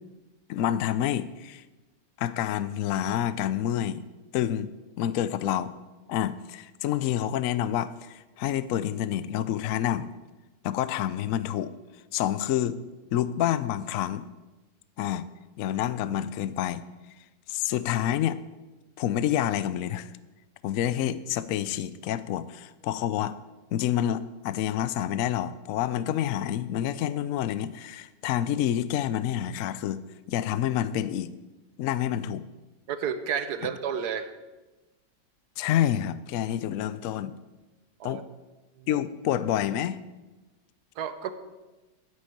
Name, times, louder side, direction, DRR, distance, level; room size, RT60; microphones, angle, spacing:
voice 1, 0.5-1.6 2.2-4.0 4.3-4.7 5.0-5.7 6.1-10.1 10.6-11.7 12.1-12.8 13.1-14.2 15.0-15.3 15.6-16.8 17.5-18.4 19.0-20.1 20.6-23.3 23.7-30.0 30.3-31.3 31.8-32.5 35.6-37.4 38.0-38.2 38.9-40.0, left 11 dB, 80° left, 15 dB, 0.7 m, -28 dB
voice 2, 32.9-34.3 38.0-38.2 38.8-39.0 41.0-41.3, right 7 dB, 65° right, 11 dB, 1.2 m, -31 dB
9.7 x 6.5 x 8.5 m, 1.1 s
omnidirectional pair, 2.0 m